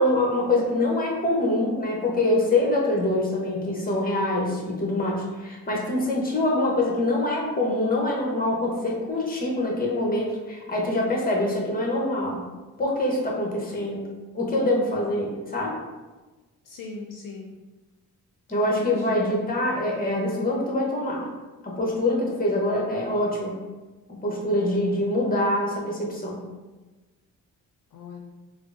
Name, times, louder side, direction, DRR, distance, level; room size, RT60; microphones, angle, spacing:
voice 1, 0.0-12.4 12.8-14.1 14.3-15.8 18.5-21.3 21.6-23.5 24.1-26.4, left 1 dB, 25° left, -2 dB, 0.9 m, -25 dB
voice 2, 16.6-17.5 18.5-19.3 27.9-28.2, left 3 dB, 65° left, -1 dB, 0.5 m, -39 dB
3.5 x 2.0 x 2.5 m, 1.2 s
cardioid pair, 65°, 36 cm